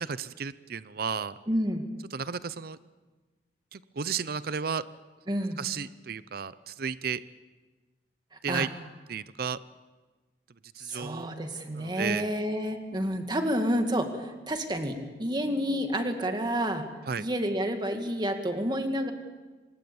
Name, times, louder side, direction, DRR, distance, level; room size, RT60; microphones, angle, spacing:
voice 1, 0.0-1.3 2.1-2.8 3.7-4.8 5.6-7.2 8.4-8.7 9.1-9.6 10.8-11.3 11.7-12.3 17.1-17.3, right 6 dB, 55° right, 16 dB, 0.6 m, -33 dB
voice 2, 1.5-1.9 5.3-5.6 8.5-8.7 10.8-16.9 17.2-19.1, equal, 25° right, 5 dB, 2.2 m, -29 dB
25.5 x 20.0 x 7.1 m, 1.3 s
head